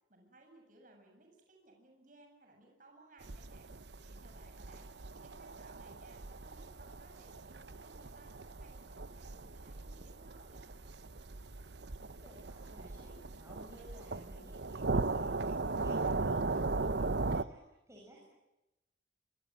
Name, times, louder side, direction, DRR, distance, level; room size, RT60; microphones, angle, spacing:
voice 1, 0.1-3.7 4.0-8.3 8.6-10.8, right 2 dB, 45° right, 2 dB, 7.6 m, -61 dB
sound 1, 3.2-17.4, right 3 dB, 70° right, 0.9 m, -38 dB
voice 2, 12.1-18.3, equal, 15° right, -2 dB, 6.4 m, -56 dB
26.0 x 26.0 x 7.6 m, 0.95 s
head